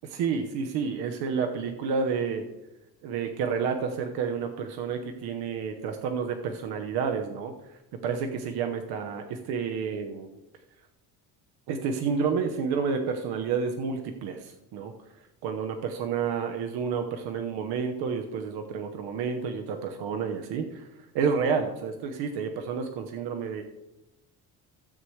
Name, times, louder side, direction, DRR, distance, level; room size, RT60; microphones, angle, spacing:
voice 1, 0.0-2.4 3.0-7.5 8.0-10.3 11.7-14.9 15.4-20.9 21.1-23.6, right 6 dB, 80° right, 5 dB, 1.0 m, -30 dB
16.0 x 7.7 x 3.3 m, 0.96 s
cardioid pair, 175°, 38 cm